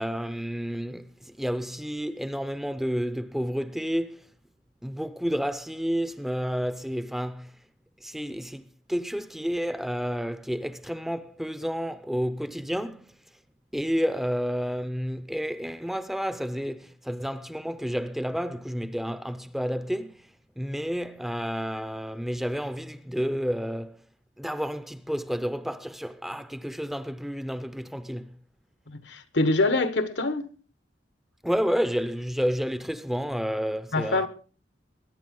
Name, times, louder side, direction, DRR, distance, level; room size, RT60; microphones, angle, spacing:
voice 1, 0.0-4.3 4.8-7.5 8.0-13.1 13.7-20.3 20.6-24.0 24.4-28.4 31.4-34.3, equal, ahead, 0.6 m, -30 dB
voice 2, 28.9-30.5 33.9-34.3, left 2 dB, 75° left, 1.4 m, -25 dB
21.5 x 10.5 x 3.8 m
head